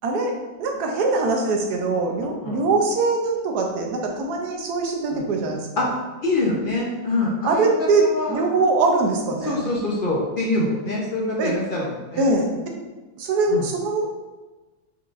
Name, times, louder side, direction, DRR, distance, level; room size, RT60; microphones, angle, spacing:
voice 1, 0.6-5.9 7.4-9.6 11.4-11.6 12.2-12.5 13.2-14.0, right 3 dB, 90° right, 2 dB, 1.2 m, -22 dB
voice 2, 6.2-7.7 8.0-8.4 9.4-12.3 13.5-13.6, left 2 dB, 55° left, -3 dB, 0.6 m, -25 dB
4.4 x 3.7 x 2.4 m, 1.2 s
omnidirectional pair, 1.6 m